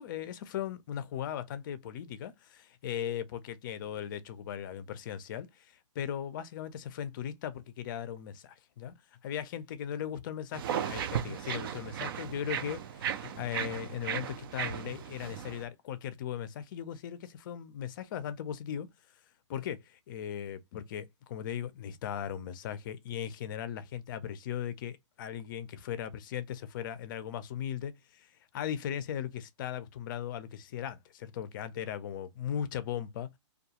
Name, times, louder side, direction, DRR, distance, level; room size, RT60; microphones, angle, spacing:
voice 1, 0.0-5.5 6.0-8.9 9.2-18.9 19.5-28.3 28.5-33.3, left 9 dB, 40° left, 0.4 m, -38 dB
sound 1, 10.5-15.6, right 8 dB, 45° right, 0.4 m, -36 dB
2.3 x 2.3 x 2.8 m
hypercardioid pair, 145°, 16 cm